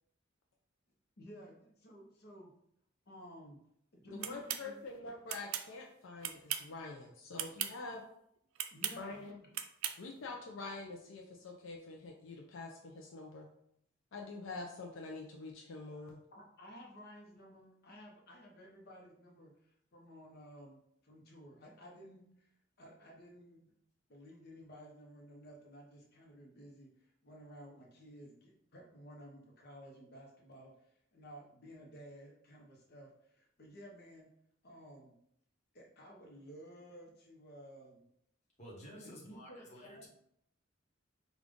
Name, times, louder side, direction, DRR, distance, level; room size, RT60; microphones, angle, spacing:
voice 1, 1.2-2.5 3.1-3.6 3.9-4.8 8.7-9.5 16.3-22.5 22.8-23.7 24.1-34.3 34.6-35.2 35.7-38.0 39.0-40.1, equal, 50° left, -1 dB, 0.8 m, -54 dB
voice 2, 4.1-8.0 9.0-9.4 10.0-13.5 14.1-16.2, left 3 dB, 75° left, 0 dB, 0.5 m, -46 dB
sound 1, 4.2-4.6 5.3-5.7 6.2-6.7 7.3-7.7 8.6-9.0 9.5-10.0, right 10 dB, 85° right, 0.4 m, -37 dB
voice 3, 38.6-40.1, equal, 35° left, -3 dB, 1.2 m, -52 dB
5.1 x 2.4 x 3.6 m, 0.72 s
head